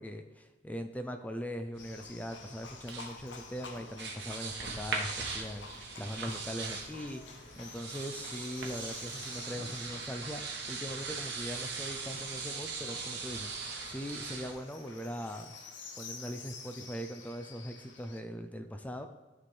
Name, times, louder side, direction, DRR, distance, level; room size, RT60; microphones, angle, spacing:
voice 1, 0.0-15.5 16.0-19.1, equal, 10° left, 6 dB, 0.4 m, -41 dB
sound 1, 1.7-14.5, right 4 dB, 60° right, 1.0 m, -41 dB
Livestock farm animals working animals, 1.8-18.2, left 4 dB, 70° left, 0.9 m, -50 dB
12.5 x 4.3 x 3.2 m, 1.2 s
head